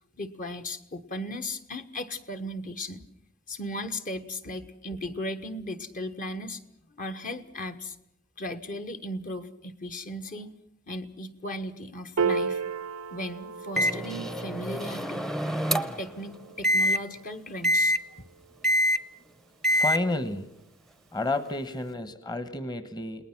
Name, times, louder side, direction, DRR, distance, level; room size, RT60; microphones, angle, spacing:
voice 1, 0.2-3.0 3.5-6.6 7.0-7.9 8.4-10.6 10.9-12.6 13.1-15.2 15.7-18.3, left 1 dB, 40° left, 7 dB, 1.3 m, -36 dB
Piano, 12.2-18.8, right 5 dB, 90° right, 0.7 m, -35 dB
Microwave oven, 13.8-16.1 16.6-17.0 17.6-18.0 18.6-19.0 19.6-20.0, equal, ahead, 0.8 m, -25 dB
voice 2, 19.6-20.5 21.1-23.3, left 2 dB, 20° left, 11 dB, 1.2 m, -31 dB
29.5 x 19.5 x 6.0 m, 0.83 s
head